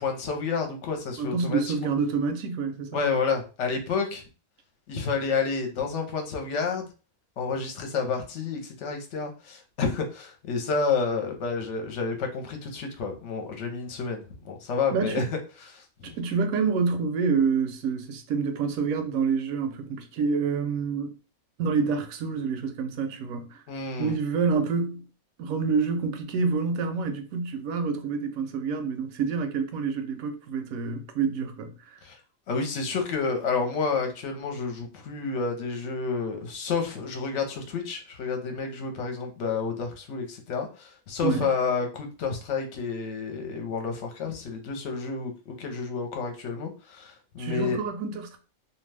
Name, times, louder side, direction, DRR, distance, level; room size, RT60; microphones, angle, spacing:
voice 1, 0.0-1.6 2.9-4.2 4.9-6.9 7.4-15.2 15.7-16.2 23.7-24.2 32.0-32.2 32.5-47.8, left 5 dB, 60° left, 0.9 m, -30 dB
voice 2, 1.2-3.0 14.9-15.3 16.2-21.1 21.6-23.6 24.0-25.0 25.4-31.7 41.2-41.5 47.4-48.4, right 5 dB, 75° right, 1.0 m, -27 dB
2.6 x 2.2 x 3.2 m
omnidirectional pair, 1.5 m